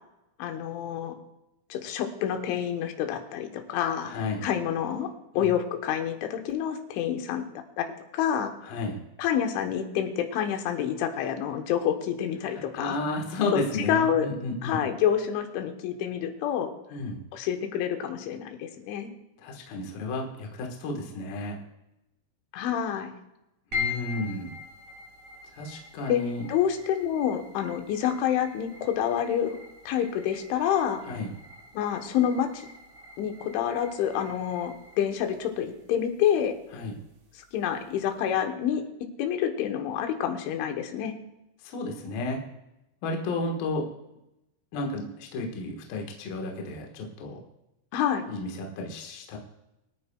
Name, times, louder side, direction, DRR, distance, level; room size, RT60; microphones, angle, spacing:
voice 1, 0.4-1.1 1.7-4.1 4.4-5.1 5.3-7.4 7.8-7.9 8.1-8.5 9.2-13.0 13.5-13.6 13.9-14.3 14.6-16.7 17.3-19.1 22.5-23.1 26.1-26.2 26.5-29.6 29.9-31.0 31.7-32.7 33.2-36.6 37.4-38.8 39.2-41.1 47.9-48.3, left 9 dB, 75° left, 5 dB, 3.4 m, -28 dB
voice 2, 4.0-4.4 5.3-5.5 8.6-9.0 12.8-14.8 16.9-17.2 19.4-21.6 23.7-24.5 25.5-26.4 31.0-31.3 36.7-36.9 41.6-42.4 43.0-43.9 44.7-47.4 48.3-49.4, left 2 dB, 60° left, 1 dB, 2.7 m, -32 dB
sound 1, 23.7-38.2, left 5 dB, 45° right, 2.1 m, -42 dB
24.5 x 9.4 x 2.3 m, 0.91 s
omnidirectional pair, 5.6 m